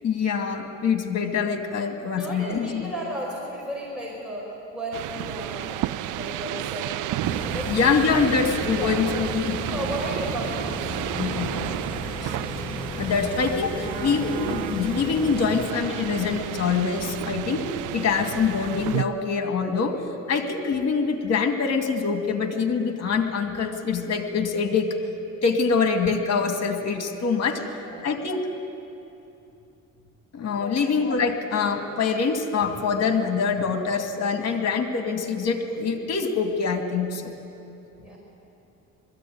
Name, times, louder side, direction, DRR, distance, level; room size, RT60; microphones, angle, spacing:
voice 1, 0.0-2.9 7.7-9.6 11.2-11.7 12.2-12.3 13.0-17.7 17.9-19.9 20.3-24.9 25.4-27.6 28.0-28.4 30.3-37.2, left 5 dB, 55° left, 5 dB, 2.2 m, -24 dB
voice 2, 2.2-4.4 4.7-7.0 7.5-7.9 8.8-9.0 9.4-10.7 11.3-11.7 27.6-28.0 30.6-30.8 38.0-38.2, equal, 5° right, -5 dB, 5.4 m, -34 dB
sound 1, 4.9-19.0, right 15 dB, 85° right, 0.5 m, -31 dB
sound 2, 7.2-15.7, left 4 dB, 15° left, 0.6 m, -35 dB
20.5 x 14.5 x 9.3 m, 2.8 s
cardioid pair, 90°, 30 cm